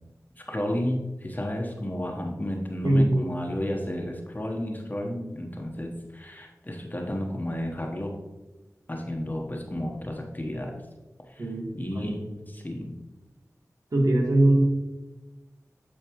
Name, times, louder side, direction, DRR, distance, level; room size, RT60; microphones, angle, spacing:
voice 1, 0.4-8.2 8.9-10.8 11.3-11.5 11.7-13.0, left 1 dB, 30° left, 1 dB, 1.2 m, -32 dB
voice 2, 2.8-3.3 11.4-11.7 11.9-12.2 13.9-14.6, right 1 dB, 70° right, -1 dB, 1.7 m, -21 dB
10.5 x 4.5 x 3.1 m, 1.1 s
cardioid pair, 40°, 6 cm